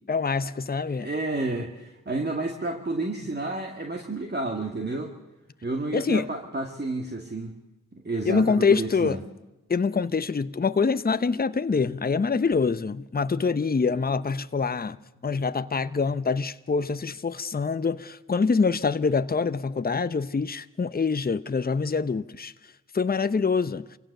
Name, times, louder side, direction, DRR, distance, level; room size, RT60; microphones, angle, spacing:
voice 1, 0.1-1.1 5.9-6.3 8.2-9.2 9.7-15.0 15.2-22.5 22.9-23.9, left 5 dB, 30° left, 0.8 m, -25 dB
voice 2, 0.9-5.1 5.6-7.5 7.9-9.2, right 2 dB, 30° right, 2.2 m, -30 dB
25.5 x 16.5 x 6.8 m
cardioid pair, 45°, 33 cm